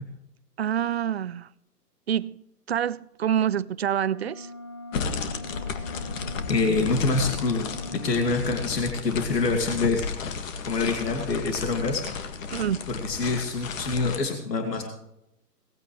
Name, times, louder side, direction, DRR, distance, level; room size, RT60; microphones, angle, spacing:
voice 1, 0.6-1.5 2.1-2.4 2.7-4.5 12.5-12.9, right 9 dB, 45° right, 0.4 m, -26 dB
sound 1, 4.0-8.4, left 1 dB, 20° left, 0.4 m, -41 dB
sound 2, 4.9-14.2, left 5 dB, 50° left, 2.1 m, -33 dB
voice 2, 6.5-10.1 10.7-12.0 12.9-14.8, left 3 dB, 80° left, 2.5 m, -26 dB
19.0 x 15.5 x 3.3 m
hypercardioid pair, 140°, 49 cm